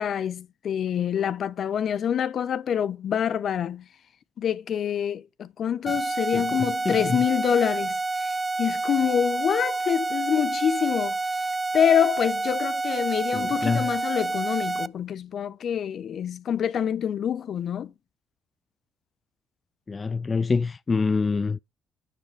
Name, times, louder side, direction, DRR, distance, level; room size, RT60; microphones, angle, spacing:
voice 1, 0.0-3.9 4.4-11.2 11.7-17.9, left 8 dB, 60° left, 0.9 m, -26 dB
sound 1, 5.9-14.9, right 3 dB, 20° right, 0.6 m, -28 dB
voice 2, 6.9-7.2 13.3-13.9 19.9-21.6, left 4 dB, 35° left, 0.4 m, -25 dB
9.6 x 5.7 x 5.1 m
supercardioid pair, 60°, 0 cm